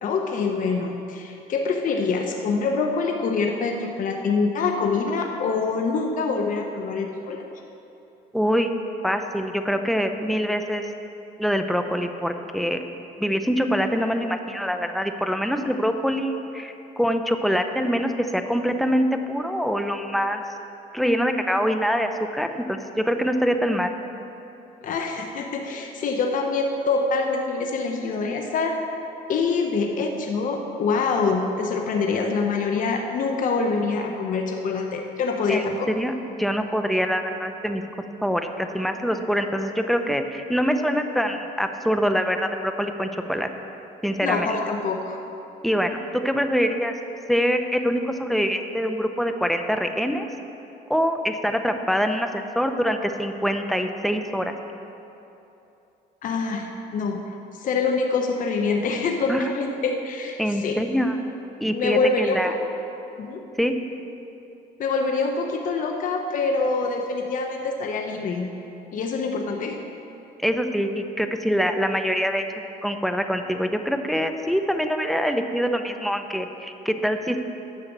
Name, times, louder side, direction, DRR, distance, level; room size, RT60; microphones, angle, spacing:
voice 1, 0.0-7.4 24.8-28.8 29.3-35.9 44.2-45.2 56.2-57.2 57.6-60.7 61.7-62.6 63.2-63.4 64.8-68.5 68.9-69.8, left 4 dB, 50° left, 2 dB, 0.9 m, -25 dB
voice 2, 8.3-8.7 9.0-10.8 11.4-12.8 13.2-20.4 20.9-23.9 35.5-36.1 36.4-37.8 38.2-43.5 44.0-44.6 45.6-46.9 47.3-50.3 50.9-54.5 59.3-59.4 60.4-61.2 61.6-62.5 63.6-63.7 70.4-72.5 72.8-77.4, equal, ahead, 6 dB, 0.7 m, -24 dB
10.5 x 6.6 x 7.4 m, 2.9 s
cardioid pair, 110°, 17 cm